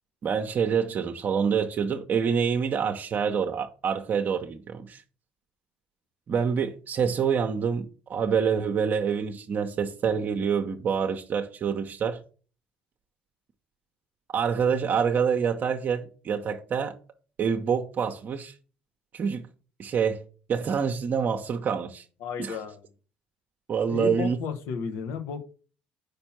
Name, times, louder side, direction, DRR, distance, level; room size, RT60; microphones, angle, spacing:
voice 1, 0.2-5.0 6.3-12.2 14.3-16.9 17.4-18.5 19.1-19.4 19.8-20.2 20.5-22.0 22.4-22.6 23.7-24.4, right 6 dB, 45° right, 0.7 m, -26 dB
voice 2, 22.2-22.9 23.8-25.4, left 6 dB, 70° left, 1.0 m, -33 dB
5.3 x 4.3 x 5.8 m
hypercardioid pair, 70°, 4 cm